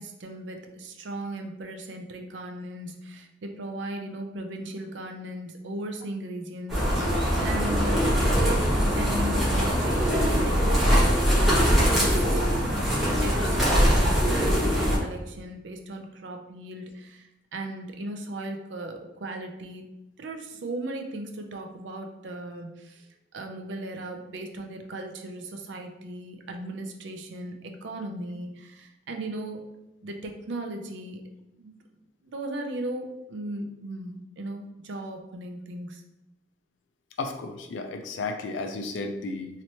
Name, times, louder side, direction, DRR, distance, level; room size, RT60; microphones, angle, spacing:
voice 1, 0.0-10.6 11.4-12.8 13.2-19.8 20.2-29.6 30.0-31.2 31.6-31.8 32.2-36.0, right 1 dB, 70° right, 4 dB, 0.5 m, -37 dB
sound 1, 6.7-15.0, equal, ahead, 1.1 m, -22 dB
voice 2, 37.2-39.5, left 3 dB, 85° left, 6 dB, 0.4 m, -33 dB
3.2 x 2.9 x 2.8 m, 0.98 s
head